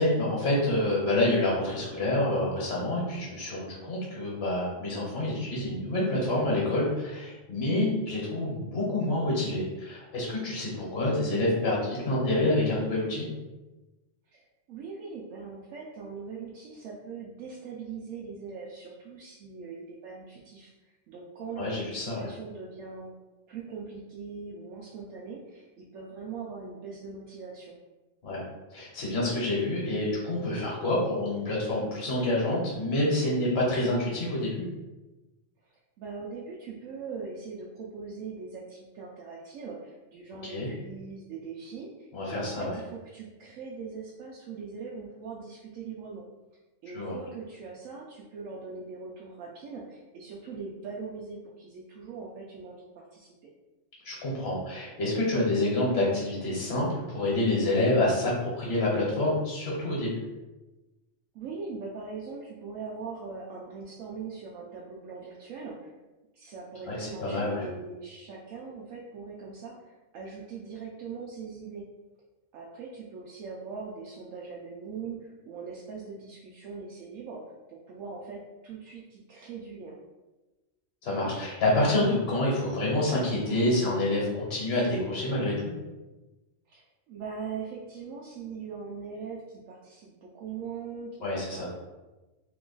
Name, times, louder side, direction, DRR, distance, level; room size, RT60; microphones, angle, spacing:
voice 1, 0.0-13.3 21.6-22.2 28.2-28.4 28.7-34.6 40.5-40.7 42.1-42.8 46.9-47.2 54.0-60.2 66.9-67.6 81.0-85.7 91.2-91.7, left 1 dB, 55° left, -5 dB, 1.2 m, -27 dB
voice 2, 14.3-23.1 23.5-27.8 35.6-46.2 46.8-53.5 61.3-65.9 66.3-71.9 72.5-77.4 77.7-80.0 86.7-91.7, right 5 dB, 85° right, -4 dB, 1.0 m, -41 dB
2.9 x 2.3 x 3.7 m, 1.1 s
omnidirectional pair, 1.3 m